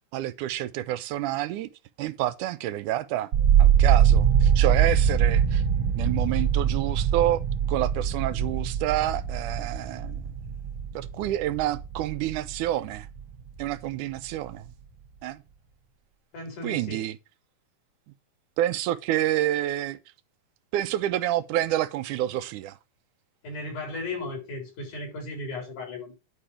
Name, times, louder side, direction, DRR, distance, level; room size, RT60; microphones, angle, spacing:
voice 1, 0.1-1.7 2.0-3.3 3.6-5.6 5.9-7.4 7.7-10.2 11.0-13.1 13.6-14.7 15.2-15.4 16.6-17.2 18.6-20.0 20.7-22.7, right 13 dB, 85° right, 2.2 m, -28 dB
sound 1, 3.3-13.3 13.6-14.3, right 8 dB, 65° right, 1.3 m, -23 dB
voice 2, 16.3-17.0 23.4-26.2, left 2 dB, 85° left, 5.6 m, -35 dB
9.9 x 4.9 x 5.7 m
omnidirectional pair, 3.5 m